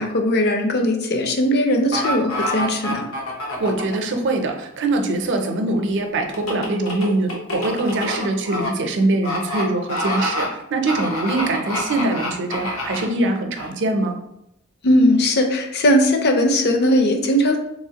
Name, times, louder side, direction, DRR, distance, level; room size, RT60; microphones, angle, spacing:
voice 1, 0.0-3.1 14.8-17.6, left 1 dB, 50° left, 4 dB, 0.5 m, -18 dB
sound 1, 1.9-4.0 6.3-8.7 9.2-9.6 9.9-10.5 10.9-13.1 13.6-13.7, left 1 dB, 90° left, 0.9 m, -26 dB
voice 2, 3.6-14.2, right 2 dB, 60° right, 4 dB, 0.5 m, -23 dB
3.6 x 3.0 x 2.8 m, 0.81 s
head